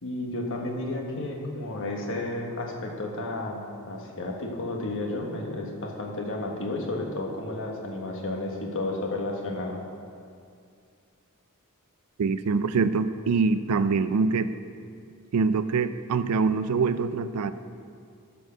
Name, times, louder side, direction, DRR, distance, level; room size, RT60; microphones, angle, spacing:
voice 1, 0.0-9.8, left 2 dB, 60° left, 0 dB, 1.4 m, -32 dB
voice 2, 12.2-14.5 15.3-17.5, right 4 dB, 80° right, 13 dB, 0.4 m, -24 dB
12.5 x 4.6 x 6.4 m, 2.3 s
head